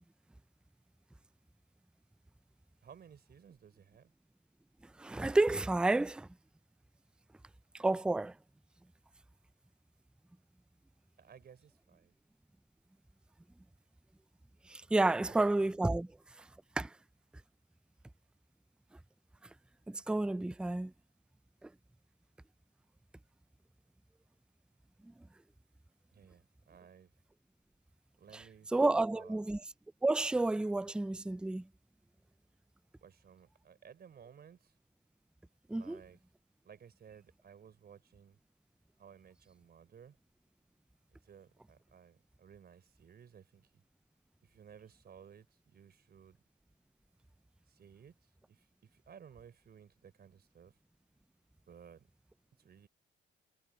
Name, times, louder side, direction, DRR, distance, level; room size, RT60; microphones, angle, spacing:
voice 1, 2.8-4.1 11.2-12.1 15.1-15.4 26.1-27.1 28.2-29.4 33.0-34.7 35.7-36.2 36.6-38.4 39.0-40.2 41.2-43.7 44.4-46.4 47.7-48.1 48.5-50.8 51.7-52.1 52.6-52.9, right 7 dB, 55° right, 4.6 m, -57 dB
voice 2, 5.0-6.3 7.7-8.3 14.7-16.1 16.8-16.9 19.9-20.9 21.6-21.7 28.3-28.4 28.7-29.6 30.0-31.6 35.7-36.0, right 2 dB, 5° right, 0.4 m, -30 dB
cardioid pair, 90°, 20 cm